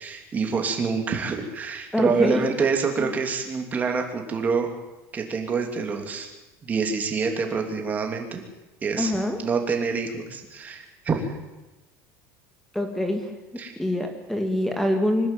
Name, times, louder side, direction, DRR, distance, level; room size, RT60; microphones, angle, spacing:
voice 1, 0.0-4.7 5.1-6.3 6.6-8.4 8.8-9.1 9.4-11.4 13.6-13.7, right 5 dB, 20° right, 3 dB, 3.2 m, -26 dB
voice 2, 1.9-2.4 3.0-3.1 9.0-9.4 12.7-13.3 13.8-15.3, left 1 dB, 5° left, 5 dB, 2.2 m, -24 dB
25.0 x 12.0 x 9.3 m, 1.1 s
cardioid pair, 150°, 7 cm